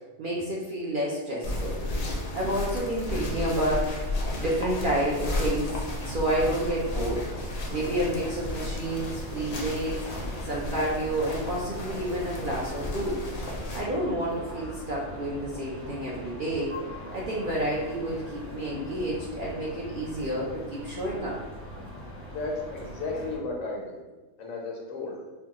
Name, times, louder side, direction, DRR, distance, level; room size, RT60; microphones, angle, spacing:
voice 1, 0.2-1.8 2.3-4.0 4.4-5.7 6.1-7.2 7.7-13.2 13.7-16.7 17.1-21.4, right 1 dB, 55° right, -4 dB, 0.6 m, -29 dB
sound 1, 1.4-13.8, left 1 dB, 50° left, 0.4 m, -33 dB
sound 2, 5.9-23.4, equal, 15° right, 0.6 m, -41 dB
voice 2, 22.3-24.0 24.4-25.1, left 3 dB, 75° left, -1 dB, 1.2 m, -34 dB
4.5 x 2.3 x 2.8 m, 1.2 s
omnidirectional pair, 1.4 m